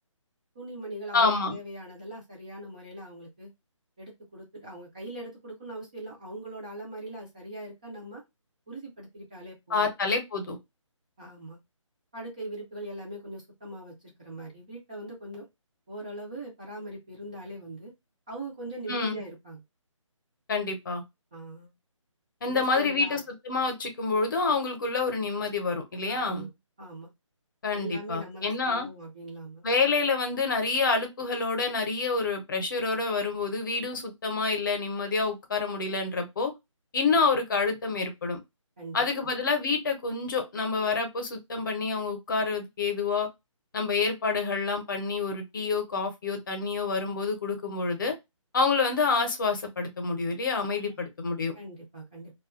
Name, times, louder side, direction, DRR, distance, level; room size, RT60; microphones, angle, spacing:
voice 1, 0.6-3.5 4.0-8.2 8.7-9.9 11.2-11.6 12.1-15.5 15.9-17.9 18.3-19.6 21.3-21.7 22.4-23.2 26.1-26.5 26.8-27.1 27.7-29.6 38.8-39.3 50.9-51.0 51.5-52.3, right 1 dB, 15° right, -4 dB, 0.4 m, -41 dB
voice 2, 1.1-1.6 9.7-10.6 18.9-19.2 20.5-21.0 22.4-26.5 27.6-28.9 29.6-36.5 36.9-38.4 38.9-43.3 43.7-48.1 48.5-51.5, left 4 dB, 40° left, 4 dB, 0.7 m, -28 dB
2.6 x 2.3 x 2.4 m, 0.21 s
figure-of-eight pair, 165°, 17 cm